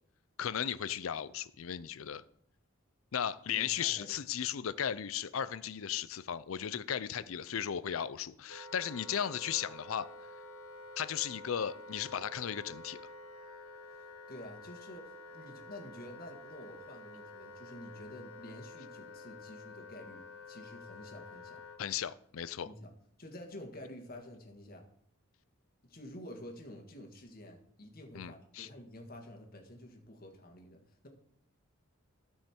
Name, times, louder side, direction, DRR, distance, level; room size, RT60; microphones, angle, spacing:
voice 1, 0.4-2.2 3.1-10.1 11.0-13.0 21.8-22.7 28.1-28.7, left 9 dB, 75° left, 0.5 m, -36 dB
voice 2, 3.5-4.2 14.3-21.6 22.6-22.9 23.2-24.9 25.8-31.1, left 1 dB, 45° left, 1.7 m, -49 dB
Wind instrument woodwind instrument, 8.5-21.8, left 2 dB, 90° left, 0.9 m, -50 dB
13.0 x 5.6 x 4.5 m
head